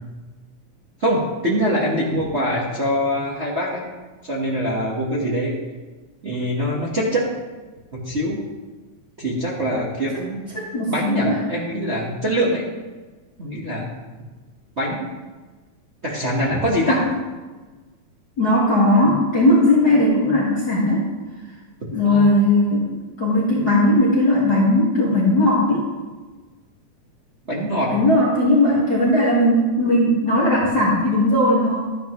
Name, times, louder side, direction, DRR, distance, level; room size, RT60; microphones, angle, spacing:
voice 1, 1.0-3.8 4.2-5.6 6.2-7.3 7.9-8.4 9.2-10.5 10.9-12.6 13.4-13.9 14.8-15.1 16.0-17.0 22.0-22.3 27.5-28.0, equal, 40° right, -5 dB, 0.9 m, -23 dB
voice 2, 10.5-11.4 16.9-17.1 18.4-21.1 21.9-25.8 27.9-31.8, left 1 dB, 40° left, -6 dB, 1.9 m, -18 dB
12.5 x 9.6 x 3.1 m, 1.3 s
omnidirectional pair, 3.4 m